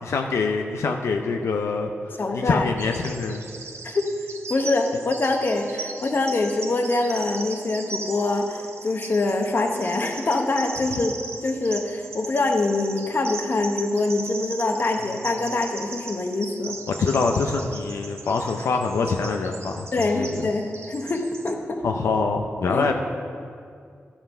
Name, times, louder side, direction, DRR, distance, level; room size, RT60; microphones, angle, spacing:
voice 1, 0.0-3.4 16.9-19.9 20.1-20.4 21.8-22.9, left 4 dB, 90° left, 3 dB, 0.5 m, -25 dB
voice 2, 2.2-2.7 3.8-4.1 4.5-11.1 11.4-16.8 19.9-21.8 22.7-22.8, left 2 dB, 45° left, 4 dB, 1.0 m, -24 dB
Bird vocalization bird call bird song, 2.8-21.5, right 4 dB, 65° right, 0.8 m, -38 dB
13.0 x 5.7 x 5.5 m, 2.3 s
wide cardioid pair, 95°, 5 cm